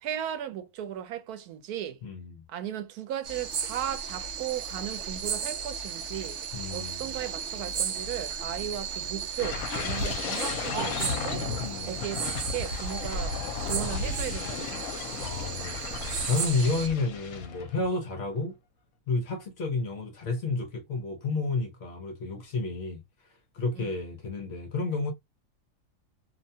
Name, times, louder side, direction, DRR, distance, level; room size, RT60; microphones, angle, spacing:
voice 1, 0.0-2.0 2.5-6.4 6.7-11.5 11.9-14.8 23.8-23.9, right 11 dB, 90° right, 1.1 m, -36 dB
voice 2, 2.0-2.4 6.5-7.1 9.9-10.1 11.6-12.0 15.2-15.8 16.3-18.6 19.1-23.0 23.5-25.1, left 3 dB, 55° left, 0.8 m, -31 dB
sound 1, 3.2-16.9, right 6 dB, 65° right, 0.8 m, -35 dB
sound 2, 9.4-17.9 18.2-18.5, left 5 dB, 75° left, 1.0 m, -34 dB
2.7 x 2.2 x 2.6 m
omnidirectional pair, 1.5 m